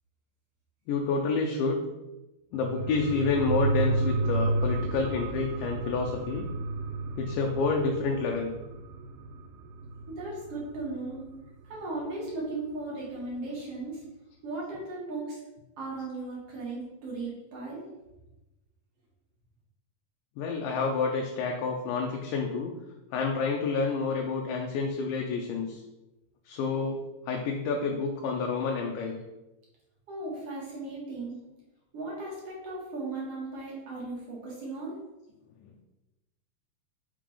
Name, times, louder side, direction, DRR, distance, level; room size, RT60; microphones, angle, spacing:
voice 1, 0.9-1.8 2.5-6.5 7.2-8.5 20.4-22.7 23.1-25.8 26.5-29.2, left 4 dB, 80° left, 1 dB, 2.2 m, -29 dB
sound 1, 2.5-11.6 12.0-12.1, right 3 dB, 90° right, 2.4 m, -32 dB
voice 2, 10.1-11.3 11.7-14.0 14.4-15.4 15.8-17.8 30.1-31.4 31.9-35.0, right 2 dB, 50° right, -4 dB, 2.2 m, -36 dB
5.8 x 3.6 x 5.0 m, 1.0 s
omnidirectional pair, 3.9 m